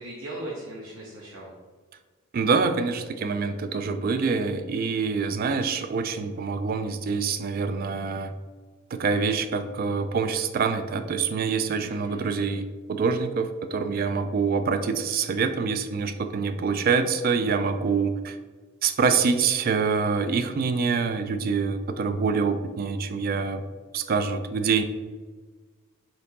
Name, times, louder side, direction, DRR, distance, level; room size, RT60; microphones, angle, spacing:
voice 1, 0.0-1.5 11.8-12.3, right 1 dB, 75° right, -5 dB, 0.9 m, -38 dB
voice 2, 2.3-8.3 8.9-18.4 18.8-23.6 23.9-24.8, right 5 dB, 45° right, 9 dB, 0.3 m, -25 dB
4.4 x 2.7 x 3.9 m, 1.4 s
head